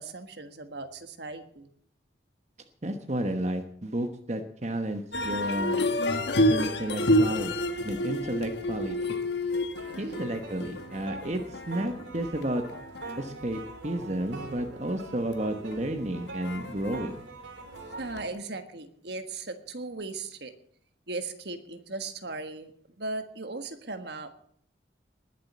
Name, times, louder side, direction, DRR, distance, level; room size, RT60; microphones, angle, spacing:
voice 1, 0.0-1.7 9.9-10.2 18.0-20.5 21.1-22.7 23.0-24.3, right 3 dB, 60° right, 8 dB, 1.6 m, -38 dB
voice 2, 2.8-5.8 6.5-9.2 10.0-12.6 13.2-17.2, right 1 dB, 35° right, 5 dB, 1.2 m, -32 dB
sound 1, 5.1-13.8 14.2-14.7 15.3-16.1 16.4-17.0 17.7-18.3, left 1 dB, 65° left, 1.4 m, -29 dB
sound 2, 9.7-18.1, right 3 dB, 90° right, 3.2 m, -44 dB
20.5 x 7.5 x 7.4 m, 0.63 s
head